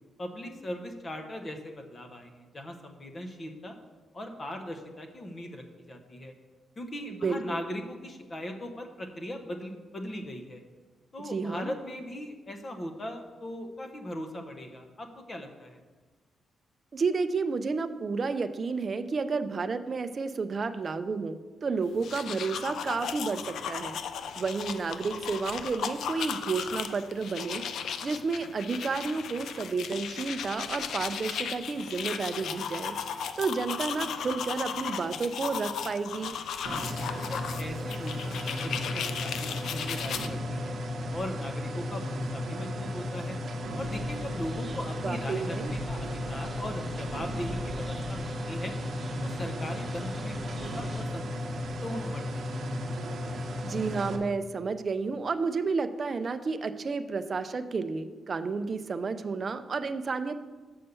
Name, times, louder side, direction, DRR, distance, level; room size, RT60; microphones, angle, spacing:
voice 1, 0.2-3.8 4.1-6.3 6.8-10.6 11.1-15.8 37.1-40.8 41.1-43.4 43.7-48.8 49.2-52.6, left 1 dB, 30° left, 4 dB, 0.9 m, -39 dB
voice 2, 7.1-7.6 11.2-11.7 16.9-24.0 24.4-27.6 28.0-36.4 45.0-45.7 53.6-60.4, right 4 dB, 40° right, 10 dB, 0.5 m, -31 dB
sound 1, 21.9-40.3, left 7 dB, 75° left, 0.4 m, -36 dB
sound 2, 36.6-54.2, left 1 dB, 55° right, 0.9 m, -34 dB
sound 3, 43.8-51.0, right 1 dB, 15° right, 1.4 m, -43 dB
6.6 x 5.4 x 6.9 m, 1.3 s
cardioid pair, 120°, 0 cm